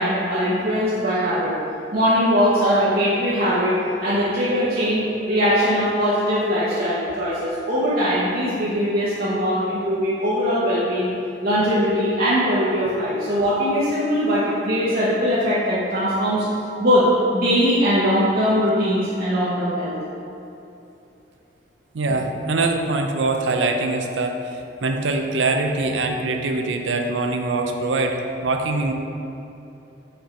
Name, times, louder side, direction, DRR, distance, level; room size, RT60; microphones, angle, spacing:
voice 1, 0.0-1.5 1.9-11.1 11.4-16.4 16.8-17.1 17.3-19.9, equal, 50° right, -10 dB, 1.0 m, -21 dB
voice 2, 21.9-28.9, right 3 dB, 80° right, 4 dB, 0.6 m, -23 dB
5.2 x 4.4 x 5.2 m, 2.8 s
head